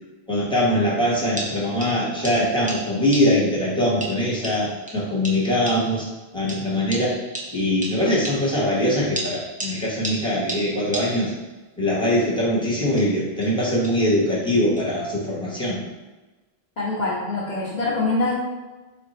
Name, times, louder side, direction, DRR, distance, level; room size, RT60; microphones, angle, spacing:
voice 1, 0.3-6.1 6.3-7.2 7.5-11.3 11.8-15.8, left 1 dB, 5° left, -7 dB, 1.0 m, -22 dB
sound 1, 0.8-0.9 1.4-3.6 4.0-6.1 6.5-8.7 9.2-11.5 12.8-14.1 14.8-14.9, right 1 dB, 10° right, 0.4 m, -35 dB
voice 2, 16.8-18.3, left 2 dB, 45° left, -8 dB, 0.8 m, -24 dB
3.4 x 2.6 x 4.2 m, 1.2 s
omnidirectional pair, 1.1 m